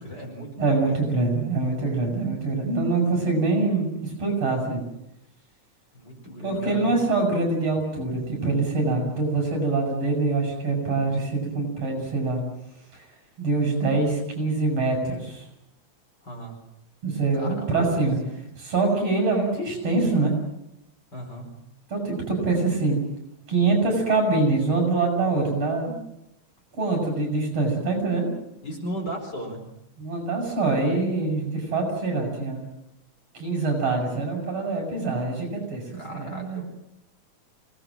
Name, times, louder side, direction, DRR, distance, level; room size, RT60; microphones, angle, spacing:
voice 1, 0.0-1.0 5.9-7.1 16.2-16.6 17.3-18.0 18.3-18.5 21.1-21.5 28.6-29.6 36.0-36.6, right 1 dB, 35° left, 2 dB, 5.3 m, -36 dB
voice 2, 0.6-4.8 6.4-12.4 12.9-13.0 13.4-15.4 17.0-18.2 18.6-20.3 21.9-23.0 23.5-25.9 26.8-28.3 30.0-32.6 33.3-35.8 36.1-36.6, right 3 dB, 55° right, 2 dB, 8.6 m, -24 dB
27.0 x 19.0 x 7.7 m, 0.83 s
omnidirectional pair, 3.4 m